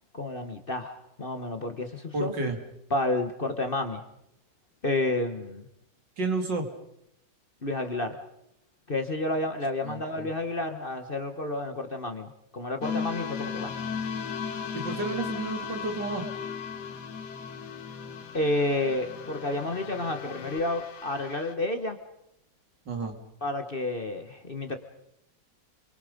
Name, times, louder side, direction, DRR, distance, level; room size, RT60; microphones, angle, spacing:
voice 1, 0.1-2.3 2.9-4.0 4.8-5.7 7.6-8.2 8.9-13.7 18.3-22.0 23.4-24.8, left 2 dB, 30° left, 7 dB, 1.5 m, -30 dB
voice 2, 2.1-2.6 6.2-6.7 9.8-10.3 14.7-16.3 22.9-23.2, right 3 dB, 75° right, 4 dB, 3.3 m, -31 dB
sound 1, 12.8-21.5, left 6 dB, 65° left, 1.8 m, -36 dB
30.0 x 23.0 x 5.3 m, 0.79 s
omnidirectional pair, 1.9 m